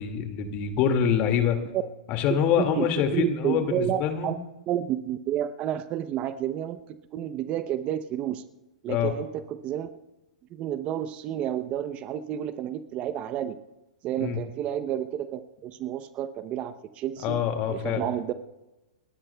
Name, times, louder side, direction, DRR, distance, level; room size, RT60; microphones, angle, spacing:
voice 1, 0.0-1.6 2.1-4.3 8.9-9.1 14.2-14.4 17.2-18.0, left 8 dB, 40° left, 5 dB, 2.1 m, -25 dB
voice 2, 2.6-4.4 4.7-6.8 7.1-8.4 8.8-9.9 10.5-13.6 14.0-17.4 17.7-18.3, right 11 dB, 35° right, 12 dB, 0.7 m, -30 dB
29.5 x 13.0 x 2.3 m, 1.0 s
hypercardioid pair, 115°, 4 cm